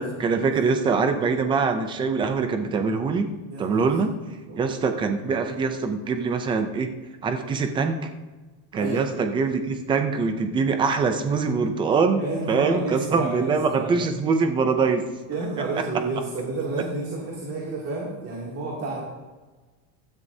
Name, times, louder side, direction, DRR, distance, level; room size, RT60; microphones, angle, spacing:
voice 1, 0.0-3.3 3.6-4.1 4.6-6.9 7.2-8.0 8.7-15.0, right 4 dB, 15° right, 7 dB, 0.3 m, -23 dB
voice 2, 3.5-3.9 4.5-4.7 8.7-9.0 12.1-13.9 15.3-19.0, right 3 dB, 30° right, -4 dB, 2.5 m, -30 dB
15.5 x 13.0 x 2.7 m, 1.3 s
cardioid pair, 175°, 45 cm